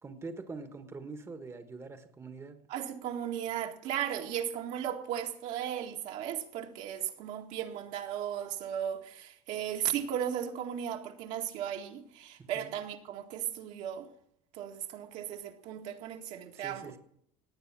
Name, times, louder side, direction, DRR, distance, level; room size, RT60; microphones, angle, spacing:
voice 1, 0.0-2.6 12.5-12.7 16.5-17.0, right 3 dB, 20° right, 1.3 m, -44 dB
voice 2, 2.7-14.1 14.5-16.9, right 10 dB, 65° right, 1.9 m, -36 dB
17.5 x 9.1 x 5.9 m
supercardioid pair, 115°, 13 cm